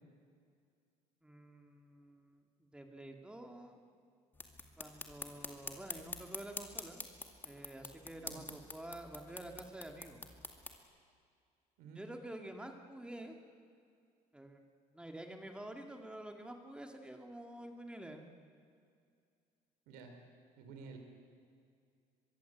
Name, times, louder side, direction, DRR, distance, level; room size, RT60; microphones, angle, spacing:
voice 1, 1.2-3.8 4.8-7.1 7.4-10.2 11.9-13.4 14.3-14.6 14.9-18.3, right 1 dB, 5° right, 4 dB, 2.0 m, -49 dB
sound 1, 4.3-10.8, left 3 dB, 15° left, 2.2 m, -47 dB
voice 2, 19.9-20.2 20.6-21.0, right 5 dB, 85° right, 5 dB, 4.5 m, -51 dB
24.0 x 22.5 x 8.0 m, 2.3 s
cardioid pair, 130°, 15 cm